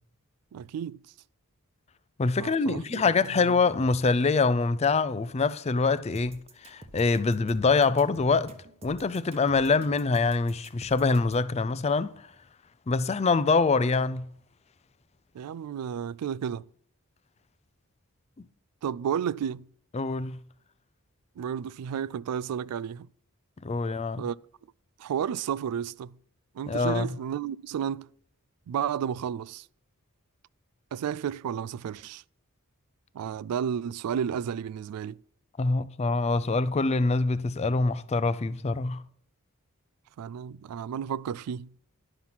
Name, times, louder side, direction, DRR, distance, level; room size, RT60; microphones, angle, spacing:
voice 1, 0.5-1.0 2.4-3.0 3.5-3.6 15.3-16.7 18.8-19.7 21.4-23.1 24.2-24.4 25.0-26.2 26.5-28.1 28.7-29.7 30.9-32.2 33.1-35.2 40.2-41.7, right 8 dB, 90° right, 0.3 m, -32 dB
voice 2, 2.2-8.5 8.8-12.1 12.9-14.3 19.9-20.4 23.6-24.2 26.7-27.1 35.6-39.0, left 4 dB, 30° left, 0.4 m, -25 dB
sound 1, 6.1-11.5, right 1 dB, 25° right, 1.0 m, -49 dB
11.0 x 5.9 x 5.7 m
head